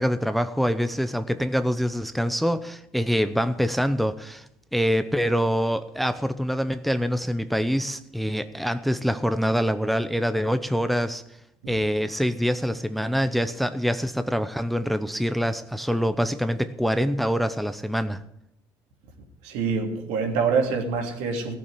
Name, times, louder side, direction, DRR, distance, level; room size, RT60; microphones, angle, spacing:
voice 1, 0.0-4.5 4.7-11.2 11.7-18.2, equal, ahead, 0.8 m, -25 dB
voice 2, 19.4-21.5, right 5 dB, 70° right, 3.1 m, -25 dB
17.0 x 7.0 x 9.8 m
hypercardioid pair, 70°, 12 cm